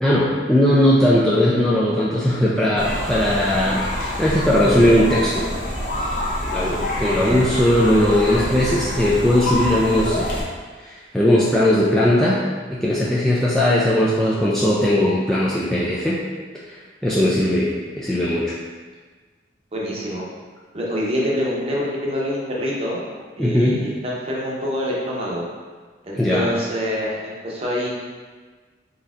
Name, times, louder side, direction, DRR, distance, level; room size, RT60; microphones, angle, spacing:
voice 1, 0.0-5.5 6.4-10.4 10.8-12.4 12.7-16.2 16.7-18.5 23.4-23.8 26.1-26.5, left 1 dB, 5° left, -7 dB, 0.3 m, -19 dB
sound 1, 2.8-10.4, left 1 dB, 40° left, 0.8 m, -26 dB
voice 2, 19.7-20.2 20.7-23.0 23.4-25.4 26.0-27.9, equal, 30° right, -4 dB, 0.8 m, -26 dB
4.2 x 3.9 x 2.4 m, 1.4 s
head